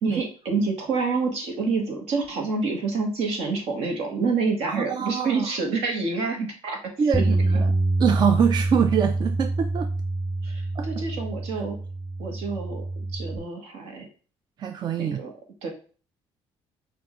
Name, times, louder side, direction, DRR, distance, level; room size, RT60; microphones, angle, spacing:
voice 1, 0.0-6.8 7.1-7.2 10.4-11.8 12.2-14.1 15.0-15.3 15.6-15.7, right 4 dB, 75° right, 1.4 m, -27 dB
voice 2, 4.7-5.5 7.0-7.7 8.0-9.9 10.8-11.0 14.6-15.2, right 7 dB, 45° right, 0.4 m, -24 dB
Bass guitar, 7.1-13.4, right 2 dB, 5° right, 0.9 m, -26 dB
6.1 x 2.6 x 3.1 m
cardioid pair, 100°, 11 cm